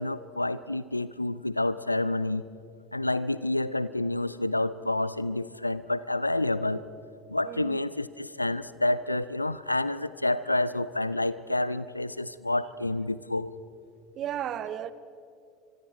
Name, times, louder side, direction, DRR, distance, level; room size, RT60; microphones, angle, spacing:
voice 1, 0.0-2.5 2.9-6.8 7.3-13.5, left 2 dB, 90° left, 16 dB, 0.6 m, -29 dB
voice 2, 7.4-7.8 14.1-14.9, right 10 dB, 40° right, 15 dB, 1.1 m, -34 dB
29.0 x 25.0 x 4.5 m, 2.4 s
figure-of-eight pair, 70°, 0 cm